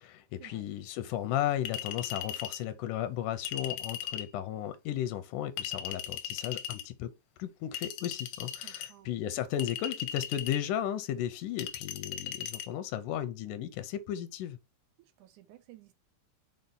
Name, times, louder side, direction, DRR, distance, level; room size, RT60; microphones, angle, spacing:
voice 1, 0.0-7.1 7.4-14.6, left 11 dB, 90° left, 2.2 m, -35 dB
Chink clink, 1.7-2.6 3.4-4.3 5.6-6.8 7.7-8.9 9.6-10.6 11.6-12.7, left 10 dB, 75° left, 1.5 m, -38 dB
voice 2, 8.6-9.2 15.0-15.9, right 15 dB, 85° right, 2.1 m, -55 dB
5.5 x 4.6 x 3.9 m
omnidirectional pair, 3.6 m